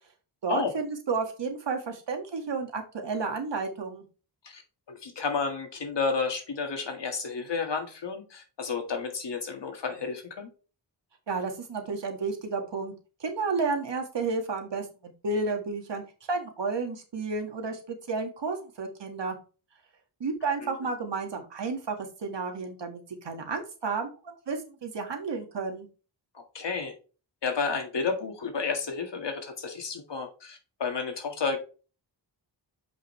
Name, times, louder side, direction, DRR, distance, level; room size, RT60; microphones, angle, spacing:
voice 1, 0.4-4.0 11.3-12.9 13.2-14.9 15.2-16.0 16.3-19.4 20.2-22.0 22.2-25.9, right 4 dB, 65° right, 3 dB, 1.9 m, -31 dB
voice 2, 4.9-10.5 20.6-20.9 26.3-26.9 27.4-31.6, left 5 dB, 60° left, 4 dB, 1.8 m, -31 dB
7.3 x 5.4 x 3.2 m, 0.35 s
wide cardioid pair, 110°, 46 cm